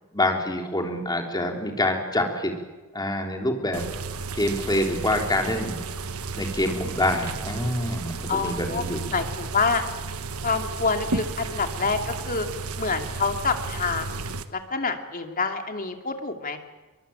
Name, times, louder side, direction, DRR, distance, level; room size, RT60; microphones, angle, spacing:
voice 1, 0.1-2.5 2.9-3.9 4.4-5.8 6.3-9.1, left 1 dB, 20° left, 2 dB, 3.6 m, -26 dB
sound 1, 3.7-14.4, right 4 dB, 80° right, 1.4 m, -33 dB
voice 2, 8.3-8.8 9.1-9.8 10.4-12.5 12.8-16.6, left 4 dB, 40° left, 5 dB, 2.5 m, -27 dB
23.5 x 23.5 x 8.9 m, 1.2 s
head